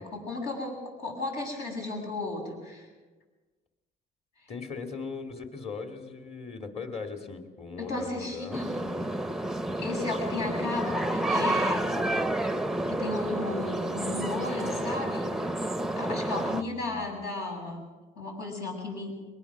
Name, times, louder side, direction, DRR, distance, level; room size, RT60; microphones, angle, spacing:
voice 1, 0.0-2.9 4.4-4.5 7.8-9.0 9.8-11.9 12.9-15.3 16.0-17.8 18.2-19.1, left 2 dB, 75° left, 0 dB, 7.6 m, -34 dB
voice 2, 4.5-8.7 10.8-11.0 16.5-17.2, left 4 dB, 40° left, 5 dB, 2.7 m, -39 dB
sound 1, 8.5-16.6, right 1 dB, ahead, 0.6 m, -30 dB
22.5 x 20.0 x 6.2 m, 1.3 s
cardioid pair, 110°, 17 cm